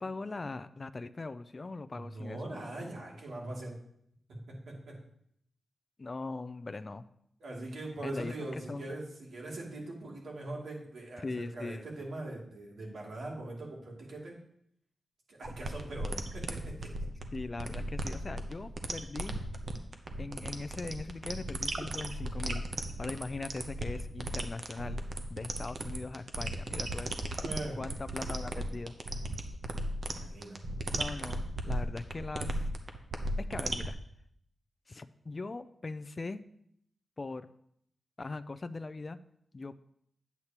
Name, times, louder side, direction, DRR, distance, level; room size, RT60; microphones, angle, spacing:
voice 1, 0.0-2.4 6.0-7.1 8.0-8.9 11.2-11.9 17.3-19.4 20.2-22.6 23.0-25.0 25.3-27.2 27.8-29.0 30.9-32.7 33.4-34.0 34.9-36.4 37.2-37.5 38.2-39.2 39.5-39.7, left 3 dB, 30° left, 12 dB, 0.3 m, -40 dB
voice 2, 1.9-3.8 4.3-5.0 7.4-14.4 15.3-16.9 27.3-27.8 30.1-30.6, right 2 dB, 80° right, -2 dB, 2.5 m, -41 dB
sound 1, 15.4-33.9, right 1 dB, 50° right, 0.7 m, -36 dB
9.5 x 8.1 x 2.9 m, 0.71 s
wide cardioid pair, 155°, 0 cm